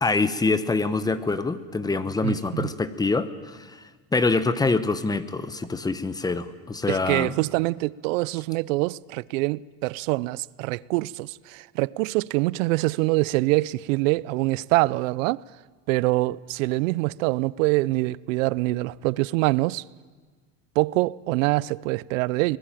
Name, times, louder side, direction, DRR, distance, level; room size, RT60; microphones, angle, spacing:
voice 1, 0.0-3.7 4.1-7.3, left 3 dB, 10° left, 0.9 m, -25 dB
voice 2, 2.2-2.7 6.9-15.4 15.9-19.8 20.8-22.6, right 21 dB, 80° right, 0.7 m, -25 dB
25.5 x 19.5 x 9.0 m
supercardioid pair, 145°, 38 cm